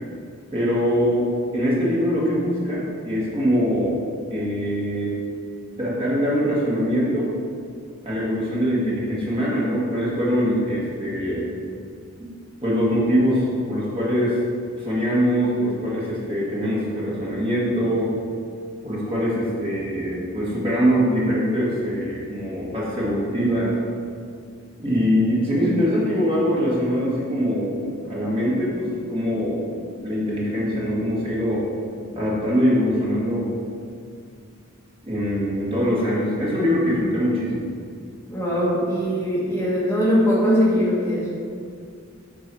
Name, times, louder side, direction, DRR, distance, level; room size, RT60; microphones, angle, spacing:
voice 1, 0.5-4.0 4.3-5.2 5.8-7.3 8.0-11.5 12.2-12.3 12.6-14.4 14.8-18.1 18.8-23.7 24.8-31.7 32.1-33.5 35.0-37.7, equal, 25° right, -6 dB, 1.7 m, -23 dB
voice 2, 38.3-41.3, equal, 10° left, -8 dB, 1.4 m, -21 dB
7.4 x 4.6 x 6.2 m, 2.3 s
head